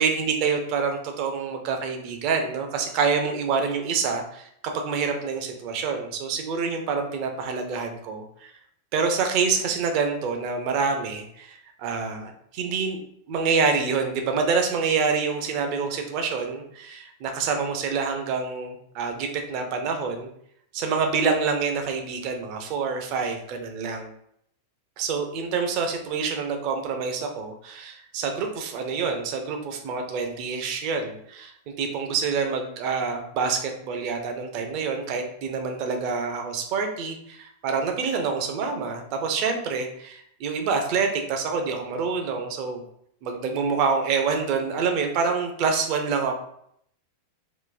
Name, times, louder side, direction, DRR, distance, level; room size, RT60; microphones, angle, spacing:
voice 1, 0.0-8.5 8.9-13.0 13.3-20.3 20.7-24.1 25.0-42.8 43.2-46.4, right 5 dB, 45° right, 4 dB, 0.5 m, -27 dB
3.7 x 2.6 x 2.5 m, 0.71 s
figure-of-eight pair, 90°, 0 cm